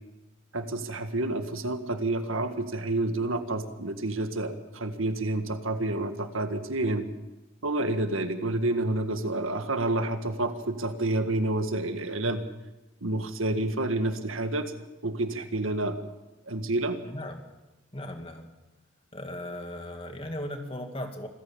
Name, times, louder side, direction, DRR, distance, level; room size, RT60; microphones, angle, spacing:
voice 1, 0.5-7.1 7.6-12.4 13.0-14.8 15.0-16.0 16.5-17.0, right 2 dB, 80° right, 8 dB, 1.8 m, -29 dB
voice 2, 17.0-17.4 17.9-18.5 19.1-21.3, left 1 dB, 25° left, 5 dB, 2.1 m, -37 dB
25.5 x 14.5 x 7.2 m, 1.0 s
head